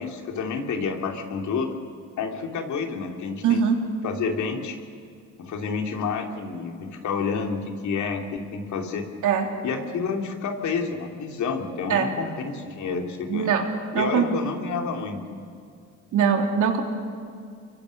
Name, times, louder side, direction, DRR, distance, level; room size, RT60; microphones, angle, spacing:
voice 1, 0.0-1.8 2.2-3.6 4.0-4.8 5.4-9.0 9.6-13.5 13.9-15.4, left 5 dB, 70° left, 3 dB, 3.1 m, -29 dB
voice 2, 3.4-3.8 9.2-9.5 11.9-12.1 13.3-13.7 13.9-14.2 16.1-16.8, right 7 dB, 80° right, 2 dB, 3.6 m, -21 dB
30.0 x 23.5 x 6.6 m, 2.3 s
cardioid pair, 90°, 30 cm